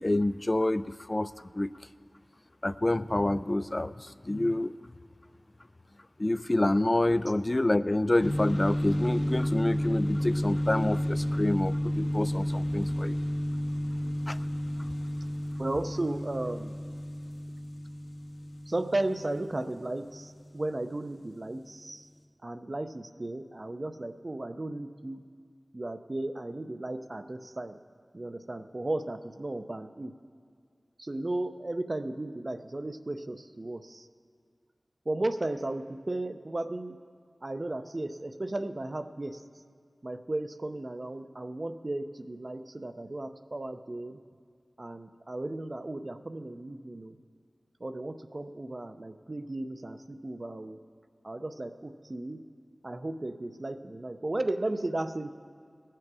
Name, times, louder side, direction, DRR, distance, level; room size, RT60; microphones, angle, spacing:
voice 1, 0.0-1.7 2.6-4.7 6.2-13.2 14.3-14.4 14.8-14.9, left 1 dB, 35° left, 15 dB, 0.3 m, -28 dB
sound 1, 8.2-20.7, equal, 90° left, 1.7 m, -31 dB
voice 2, 15.6-16.8 18.7-22.1 22.4-25.2 25.7-27.8 28.1-30.1 31.0-34.1 35.1-37.0 37.4-39.4 40.0-44.2 44.8-47.2 47.8-50.8 51.2-52.4 52.8-55.3, right 2 dB, 45° right, 9 dB, 0.6 m, -35 dB
19.5 x 7.6 x 4.8 m, 2.1 s
wide cardioid pair, 55°, 0 cm